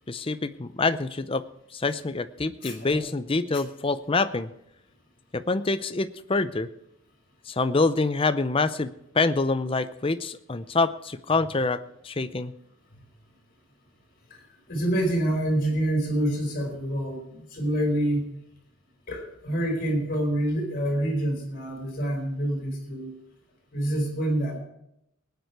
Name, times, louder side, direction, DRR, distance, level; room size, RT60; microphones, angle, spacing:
voice 1, 0.1-1.4 1.7-4.5 5.3-6.7 7.5-12.5, left 3 dB, 25° left, 12 dB, 0.5 m, -26 dB
voice 2, 2.6-3.0 3.5-3.6 14.7-18.3 19.1-23.1 23.7-24.6, right 1 dB, 40° left, 2 dB, 4.7 m, -27 dB
19.5 x 9.5 x 4.7 m, 0.81 s
head